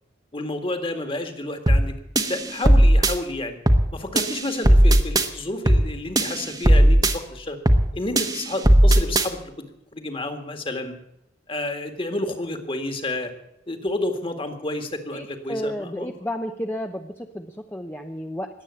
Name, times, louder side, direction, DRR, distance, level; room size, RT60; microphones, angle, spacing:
voice 1, 0.3-1.9 2.3-3.6 3.9-7.6 7.9-9.4 9.9-10.9 11.5-13.3 13.7-16.1, left 2 dB, 30° left, 7 dB, 1.9 m, -30 dB
sound 1, 1.7-1.9 2.2-3.1 3.7-3.9 4.2-5.3 5.7-5.9 6.2-7.1 7.7-7.9 8.2-9.3, right 1 dB, 20° right, 1.1 m, -16 dB
voice 2, 15.1-18.5, equal, 10° left, 4 dB, 0.8 m, -32 dB
20.5 x 8.3 x 8.3 m, 0.81 s
head